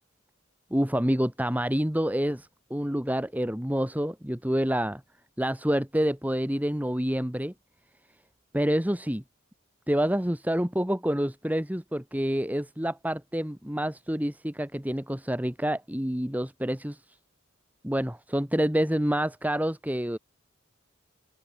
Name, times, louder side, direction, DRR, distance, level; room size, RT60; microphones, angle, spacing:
voice 1, 0.7-5.0 5.4-7.5 8.5-9.2 9.9-17.0 17.8-20.2, equal, 10° right, 1.9 m, -27 dB
open air
head